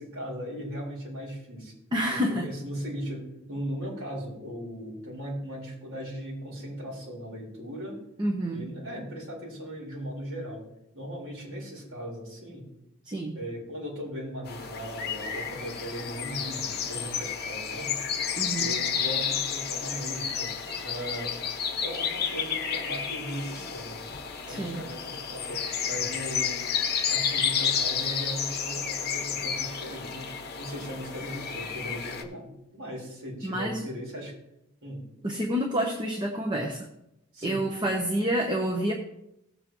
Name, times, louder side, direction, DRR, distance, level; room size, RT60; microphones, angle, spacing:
voice 1, 0.0-1.7 2.3-8.0 8.5-10.6 10.9-12.7 13.3-17.9 18.6-20.5 20.8-21.3 21.8-24.0 24.5-26.6 27.1-30.3 30.6-34.3 34.8-35.1 37.3-37.7, equal, 65° right, -4 dB, 4.3 m, -38 dB
voice 2, 1.9-2.5 8.2-8.7 13.1-13.4 18.4-18.7 24.5-24.8 33.4-33.8 35.2-36.9 37.4-38.9, right 1 dB, 20° right, 2 dB, 0.9 m, -28 dB
sound 1, 14.5-32.2, left 7 dB, 45° left, 1.0 m, -31 dB
17.5 x 7.4 x 3.0 m, 0.84 s
head